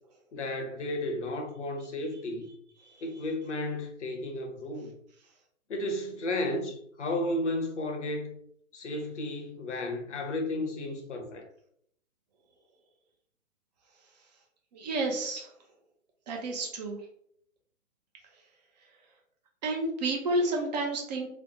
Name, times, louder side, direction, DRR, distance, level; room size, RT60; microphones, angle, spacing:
voice 1, 0.3-2.5 3.0-4.9 5.7-8.3 8.7-11.5, left 1 dB, 60° left, 1.1 m, -33 dB
voice 2, 14.7-15.5 16.3-17.0 19.6-21.3, right 2 dB, 30° right, 0.7 m, -30 dB
3.3 x 2.3 x 4.0 m
figure-of-eight pair, 125°, 40 cm